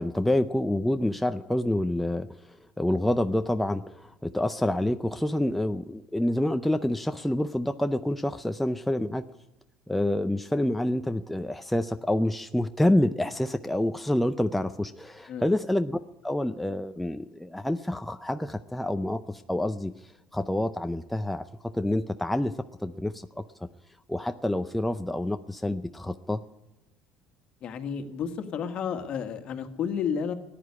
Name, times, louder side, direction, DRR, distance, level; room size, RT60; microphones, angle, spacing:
voice 1, 0.0-9.3 9.9-21.5 21.7-22.5 22.8-23.4 24.1-26.4, left 1 dB, 5° left, 8 dB, 0.5 m, -27 dB
voice 2, 27.6-30.3, left 7 dB, 50° left, 7 dB, 1.6 m, -31 dB
14.0 x 10.0 x 9.6 m, 1.0 s
cardioid pair, 120°, 2 cm